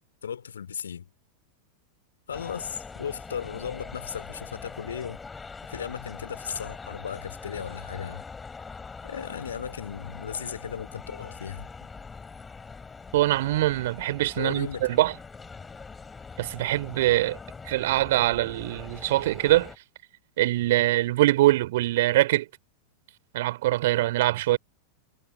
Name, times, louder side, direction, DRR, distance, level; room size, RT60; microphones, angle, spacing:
voice 1, 0.2-1.1 2.3-5.2 5.7-8.2 9.0-11.7 14.4-15.0, left 8 dB, 70° left, 3.3 m, -36 dB
Ambeo binaural. walk through Helsinki train station, 2.3-19.8, left 4 dB, 15° left, 5.7 m, -43 dB
voice 2, 13.1-15.1 16.4-17.4 17.7-19.7 20.4-22.5 23.3-24.6, right 16 dB, 55° right, 3.6 m, -23 dB
figure-of-eight pair, 90°, 0 cm